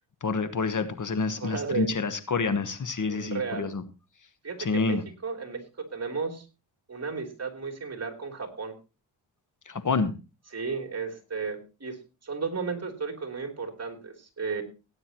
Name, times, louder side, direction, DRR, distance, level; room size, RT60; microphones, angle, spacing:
voice 1, 0.2-3.8 4.6-5.0 9.7-10.1, left 4 dB, 45° left, 11 dB, 1.3 m, -28 dB
voice 2, 1.4-1.9 3.1-3.7 4.4-5.6 5.9-6.4 6.9-8.8 10.5-14.6, right 5 dB, 35° right, 3 dB, 3.4 m, -34 dB
17.5 x 9.5 x 3.0 m, 0.30 s
cardioid pair, 75°, 43 cm